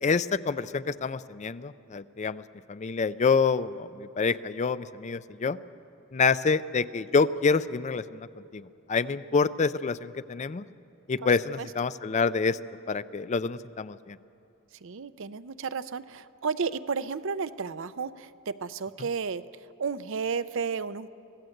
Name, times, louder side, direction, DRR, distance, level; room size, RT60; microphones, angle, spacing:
voice 1, 0.0-2.4 2.7-5.6 6.1-8.3 8.5-10.6 11.1-12.6 12.9-14.2, left 4 dB, 35° left, 15 dB, 0.4 m, -27 dB
voice 2, 14.8-19.4 19.8-21.1, right 5 dB, 60° right, 13 dB, 0.6 m, -32 dB
25.0 x 16.0 x 7.9 m, 2.6 s
head